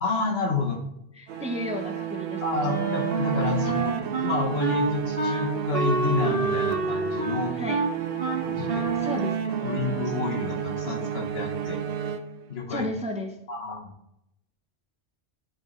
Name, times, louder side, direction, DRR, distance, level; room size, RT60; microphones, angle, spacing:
voice 1, 0.0-0.8 2.4-7.5 8.3-9.1 9.6-11.8 12.5-12.9 13.5-13.9, left 3 dB, 65° left, 2 dB, 1.3 m, -29 dB
voice 2, 1.1-2.4 3.4-3.5 7.6-7.8 9.0-9.8 12.7-13.3, left 1 dB, 5° right, 3 dB, 0.6 m, -33 dB
sound 1, 1.3-12.8, right 8 dB, 85° right, 1.0 m, -32 dB
Wind instrument woodwind instrument, 2.6-10.2, right 4 dB, 55° right, 1.7 m, -28 dB
10.0 x 4.9 x 3.2 m, 0.82 s
omnidirectional pair, 1.1 m